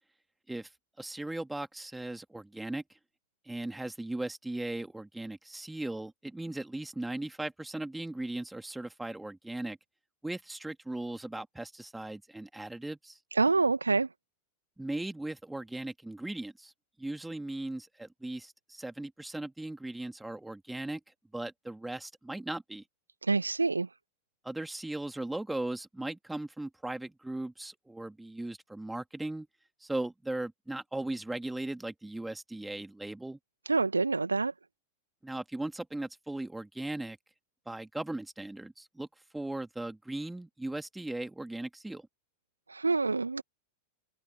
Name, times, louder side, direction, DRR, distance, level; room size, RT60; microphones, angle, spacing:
voice 1, 1.0-3.0 3.4-9.8 10.2-13.2 14.8-16.7 17.0-21.0 21.3-22.8 24.4-29.5 29.8-33.4 35.2-37.2 37.7-39.1 39.3-42.1, right 2 dB, 5° right, 2.8 m, -38 dB
voice 2, 13.3-14.1 23.2-23.9 33.7-34.5 42.7-43.4, right 3 dB, 80° right, 1.9 m, -27 dB
figure-of-eight pair, 90°, 0 cm